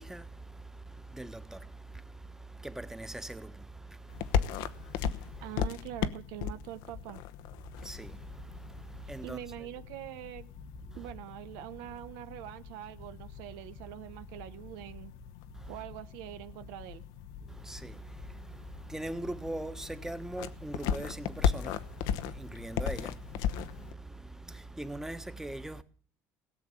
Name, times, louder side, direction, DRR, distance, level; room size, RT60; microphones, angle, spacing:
voice 1, 0.0-5.5 7.7-9.7 10.8-11.1 15.5-15.8 17.4-25.8, right 2 dB, 5° right, 1.3 m, -42 dB
sound 1, 4.1-23.9, left 8 dB, 85° left, 0.9 m, -37 dB
voice 2, 5.4-7.2 9.2-10.5 10.9-15.1 15.7-17.0, right 13 dB, 85° right, 0.9 m, -44 dB
17.5 x 7.1 x 9.5 m
supercardioid pair, 95°, 7 cm